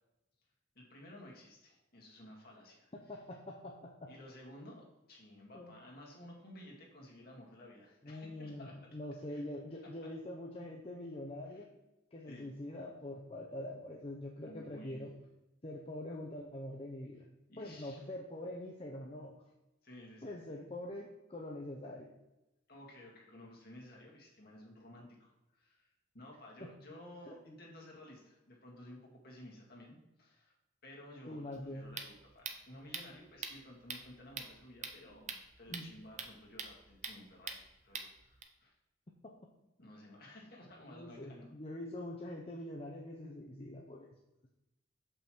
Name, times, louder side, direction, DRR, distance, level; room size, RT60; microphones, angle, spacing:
voice 1, 0.8-2.9 4.1-9.0 9.3-9.4 11.5-11.7 12.3-12.5 14.4-15.1 17.5-18.0 19.8-20.4 22.7-30.5 30.8-38.7 39.8-41.5, left 1 dB, 50° left, -2 dB, 1.9 m, -54 dB
voice 2, 2.9-4.1 5.5-5.7 8.0-11.7 12.1-15.1 15.6-17.3 17.6-19.3 20.2-22.1 26.6-26.7 27.2-27.3 31.3-31.8 35.7-35.9 40.9-44.1, left 1 dB, 30° left, 0 dB, 0.6 m, -44 dB
sound 1, 31.5-38.4, right 5 dB, 35° right, 0.7 m, -46 dB
6.7 x 5.5 x 4.5 m, 0.96 s
head